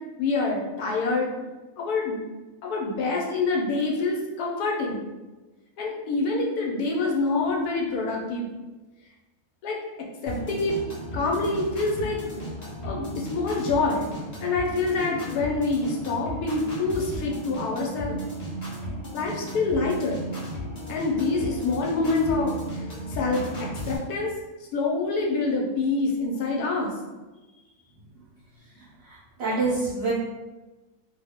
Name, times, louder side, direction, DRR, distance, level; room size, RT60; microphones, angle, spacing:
voice 1, 0.2-1.3 1.8-2.2 2.6-5.0 5.8-8.5 9.6-9.8 10.2-10.8 11.1-12.2 12.8-18.2 19.1-20.2 20.9-22.6 23.1-24.3 24.7-26.9, left 3 dB, 75° left, -1 dB, 1.1 m, -26 dB
sound 1, 10.3-24.0, equal, 40° left, 0.6 m, -35 dB
voice 2, 28.8-30.1, right 3 dB, 90° right, -7 dB, 0.5 m, -28 dB
2.6 x 2.0 x 3.4 m, 1.2 s
omnidirectional pair, 1.7 m